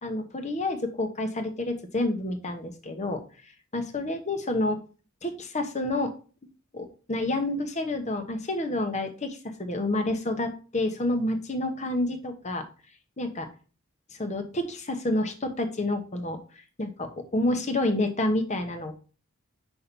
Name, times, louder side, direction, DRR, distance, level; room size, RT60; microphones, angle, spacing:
voice 1, 0.0-3.2 3.7-4.8 5.2-6.1 6.7-12.6 13.2-13.5 14.2-16.4 16.8-18.9, left 1 dB, 35° left, 7 dB, 1.0 m, -29 dB
5.6 x 4.4 x 5.3 m, 0.37 s
head